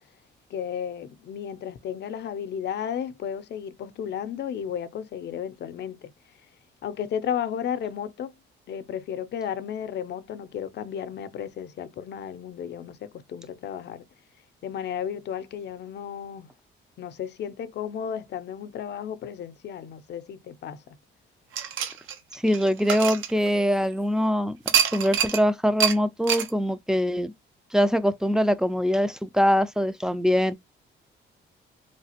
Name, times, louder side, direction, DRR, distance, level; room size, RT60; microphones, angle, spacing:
voice 1, 0.5-6.1 6.8-8.3 8.7-14.1 14.6-16.5 17.0-21.0, left 8 dB, 60° left, 0.5 m, -33 dB
sound 1, 21.5-23.9 24.7-25.4 25.8-26.0 26.3-26.5, right 8 dB, 80° right, 0.7 m, -26 dB
voice 2, 22.3-24.6 24.9-27.3 27.7-30.6, equal, 5° right, 0.3 m, -23 dB
3.2 x 2.4 x 2.8 m
cardioid pair, 90°, 20 cm